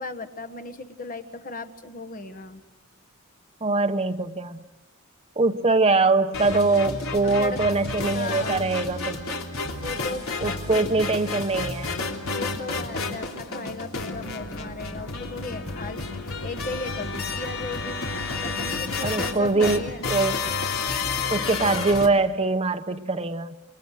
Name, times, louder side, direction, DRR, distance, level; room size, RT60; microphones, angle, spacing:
voice 1, 0.0-2.6 7.2-7.6 8.0-8.7 9.8-10.8 12.3-16.1 16.4-18.0 18.4-20.1, left 3 dB, 40° left, 8 dB, 1.5 m, -36 dB
voice 2, 3.6-4.6 5.4-9.2 10.4-11.9 19.0-20.4 21.3-23.6, right 3 dB, 30° right, 8 dB, 1.0 m, -23 dB
sound 1, 6.3-22.1, left 3 dB, 75° left, 3.3 m, -31 dB
28.0 x 23.0 x 6.5 m, 1.1 s
head